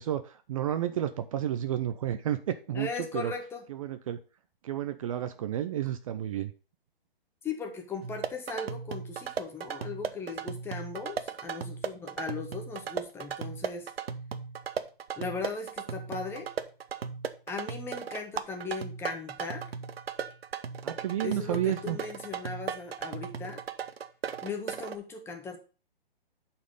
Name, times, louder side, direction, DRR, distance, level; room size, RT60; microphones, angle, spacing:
voice 1, 0.0-3.3 3.7-4.2 4.6-6.5 20.8-22.0, right 11 dB, 35° right, 11 dB, 0.5 m, -31 dB
voice 2, 2.7-3.6 7.4-13.9 15.2-16.5 17.5-19.7 21.2-23.6 24.4-25.6, left 4 dB, 10° left, 4 dB, 0.7 m, -38 dB
sound 1, 8.0-24.9, right 7 dB, 85° right, 0.9 m, -37 dB
8.2 x 4.4 x 5.4 m, 0.36 s
hypercardioid pair, 150°, 29 cm